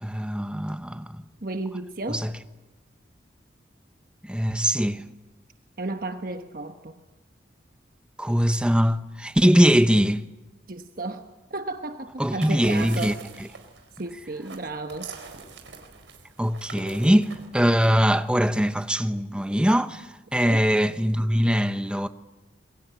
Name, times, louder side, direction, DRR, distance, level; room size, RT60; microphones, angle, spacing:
voice 1, 0.0-1.2 2.1-2.3 4.3-5.0 8.2-10.2 12.2-13.1 16.4-22.1, equal, 5° right, 0.8 m, -22 dB
voice 2, 1.4-2.3 5.8-6.9 10.7-13.1 14.0-15.1 20.4-20.6, right 2 dB, 50° right, 1.2 m, -33 dB
sound 1, 12.2-18.3, right 4 dB, 85° right, 4.3 m, -44 dB
26.5 x 23.0 x 9.3 m
head